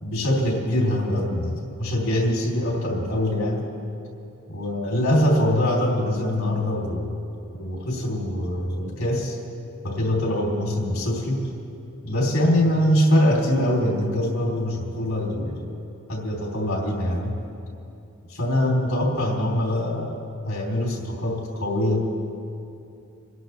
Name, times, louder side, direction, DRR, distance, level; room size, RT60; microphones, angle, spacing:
voice 1, 0.0-3.7 4.5-7.2 7.5-9.4 9.8-11.4 12.0-15.8 16.1-17.4 18.3-20.2 20.4-22.0, left 1 dB, 80° left, -3 dB, 3.6 m, -23 dB
29.5 x 11.0 x 3.4 m, 2.7 s
head